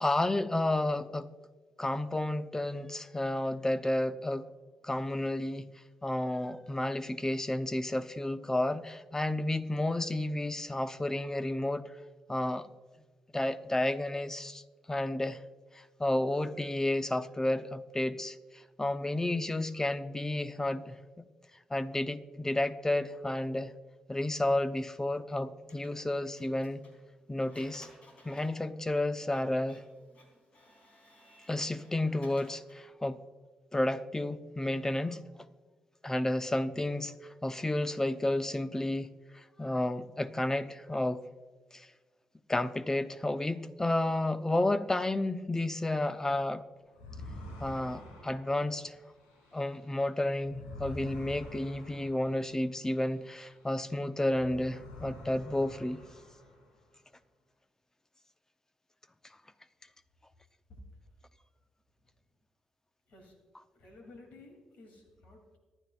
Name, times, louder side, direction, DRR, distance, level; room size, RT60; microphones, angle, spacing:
voice 1, 0.0-1.3 1.8-4.5 4.8-5.7 6.0-11.8 12.3-12.7 13.3-14.6 14.9-15.4 15.7-18.4 18.8-21.2 21.7-23.7 24.1-26.8 27.3-27.9 28.2-29.8 31.5-33.2 33.7-35.2 36.0-37.1 37.4-41.2 41.7-41.9 42.5-46.6 47.6-48.9 49.5-56.0, left 1 dB, 20° left, 0.7 m, -31 dB
Printer, 25.7-32.9, left 1 dB, 55° left, 3.5 m, -59 dB
sound 1, 46.9-53.8 54.2-56.9, left 1 dB, 85° left, 2.7 m, -48 dB
voice 2, 63.7-65.6, left 2 dB, 70° left, 3.0 m, -53 dB
25.0 x 11.0 x 2.5 m
hypercardioid pair, 40°, 3 cm